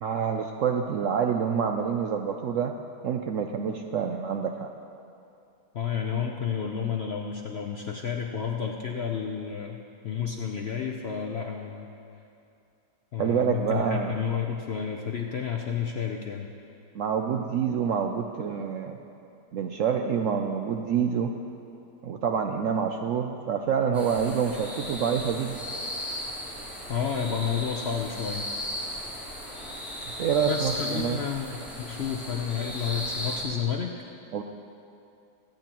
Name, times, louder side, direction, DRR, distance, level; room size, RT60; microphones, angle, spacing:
voice 1, 0.0-2.7 3.0-4.7 13.2-14.1 16.9-19.0 19.5-21.3 22.0-25.6 30.2-31.2 34.3-34.4, right 7 dB, 70° right, 4 dB, 0.7 m, -27 dB
voice 2, 5.7-9.8 10.0-11.9 13.1-16.5 26.9-28.5 30.5-33.9, left 7 dB, 60° left, 2 dB, 0.7 m, -31 dB
sound 1, 23.9-33.4, left 1 dB, ahead, 2.7 m, -36 dB
23.5 x 9.0 x 3.0 m, 2.6 s
omnidirectional pair, 1.8 m